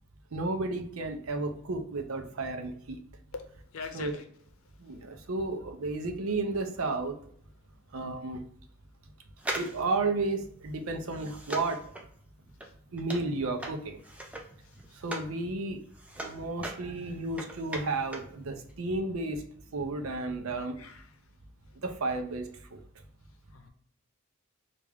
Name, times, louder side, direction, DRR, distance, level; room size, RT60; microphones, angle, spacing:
voice 1, 0.3-3.0 3.9-4.2 4.8-7.1 7.9-8.4 9.5-11.8 12.9-14.0 15.0-15.8 16.2-19.4 19.7-20.7 21.8-22.4, right 3 dB, 90° right, 6 dB, 0.6 m, -32 dB
voice 2, 3.3-4.2 12.6-12.7 14.6-15.0 20.8-21.2 23.5-23.7, left 4 dB, 80° left, 6 dB, 0.7 m, -43 dB
sound 1, 9.4-15.4 15.7-18.4 18.6-18.7, right 1 dB, 5° right, 0.5 m, -40 dB
3.4 x 2.5 x 3.4 m, 0.63 s
head